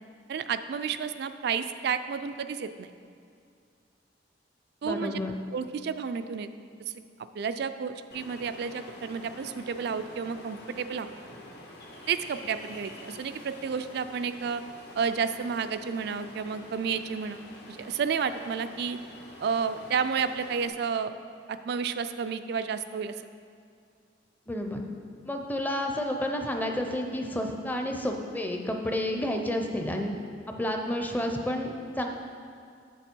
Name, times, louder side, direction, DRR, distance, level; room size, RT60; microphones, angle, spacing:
voice 1, 0.3-2.9 4.8-5.2 5.5-6.5 6.9-7.0 7.3-11.1 12.1-14.6 15.0-17.4 17.7-19.0 19.4-21.1 21.5-23.2, right 6 dB, 60° right, 10 dB, 0.3 m, -31 dB
voice 2, 4.8-5.3 24.5-24.8 25.2-30.2 30.5-32.1, left 1 dB, 10° left, 3 dB, 0.6 m, -30 dB
Ocean, 8.1-20.7, left 1 dB, 60° left, 1.0 m, -48 dB
7.5 x 7.0 x 4.5 m, 2.3 s
head